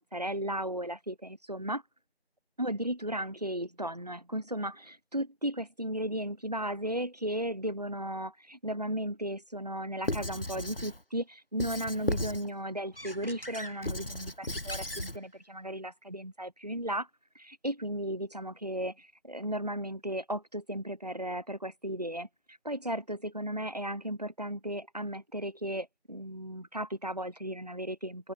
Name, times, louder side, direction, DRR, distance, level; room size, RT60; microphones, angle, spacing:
voice 1, 0.0-1.8 2.6-17.1 17.3-28.3, right 1 dB, 40° right, 5.0 m, -35 dB
Squeak / Writing, 10.0-11.0 11.6-12.5 13.0-15.2, left 1 dB, 60° left, 4.5 m, -35 dB
open air
figure-of-eight pair, 180°, 32 cm